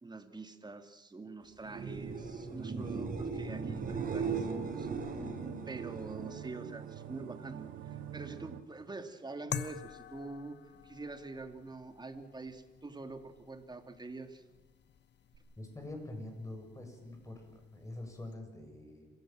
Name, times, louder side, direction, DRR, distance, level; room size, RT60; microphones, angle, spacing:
voice 1, 0.0-4.9 5.2-5.3 5.7-14.4, right 3 dB, 20° right, 7 dB, 2.3 m, -45 dB
sound 1, 1.6-7.4 7.7-8.3 15.3-15.4, right 5 dB, 45° right, 4.7 m, -39 dB
sound 2, 3.5-8.6, right 11 dB, 85° right, 1.2 m, -46 dB
sound 3, 9.5-18.3, left 9 dB, 60° left, 1.1 m, -48 dB
voice 2, 15.6-19.1, left 2 dB, 15° left, 4 dB, 6.9 m, -45 dB
27.5 x 16.0 x 7.5 m, 1.1 s
cardioid pair, 90°, 20 cm